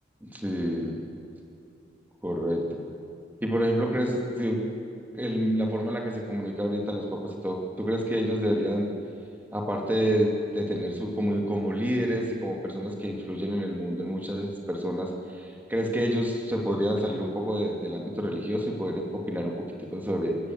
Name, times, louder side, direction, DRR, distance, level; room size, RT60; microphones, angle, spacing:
voice 1, 0.2-1.0 2.2-2.8 3.4-4.6 5.1-8.9 9.5-15.1 15.4-20.4, equal, 10° right, 0 dB, 2.5 m, -28 dB
27.5 x 16.0 x 7.8 m, 2.6 s
head